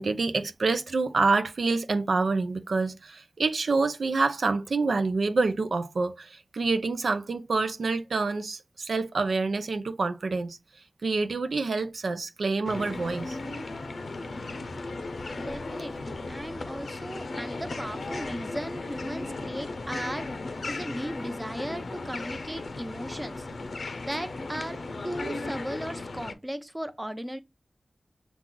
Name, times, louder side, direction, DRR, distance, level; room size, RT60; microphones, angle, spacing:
voice 1, 0.0-13.4, right 3 dB, 80° right, 0.4 m, -27 dB
sound 1, 12.6-26.3, left 2 dB, 75° left, 0.6 m, -36 dB
voice 2, 15.3-20.3 20.7-23.5 24.0-27.4, equal, 15° right, 0.7 m, -36 dB
6.0 x 2.4 x 3.7 m
wide cardioid pair, 55°, 0 cm